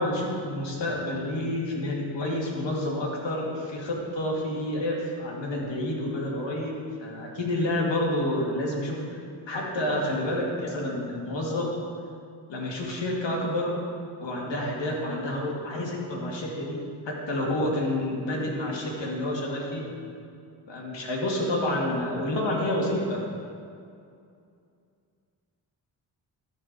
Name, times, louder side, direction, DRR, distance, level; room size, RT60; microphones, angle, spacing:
voice 1, 0.0-9.2 9.5-11.7 12.5-13.8 14.2-16.8 17.1-19.9 20.7-23.2, left 1 dB, 60° left, -2 dB, 2.3 m, -29 dB
13.0 x 4.6 x 5.3 m, 2.4 s
supercardioid pair, 50°, 48 cm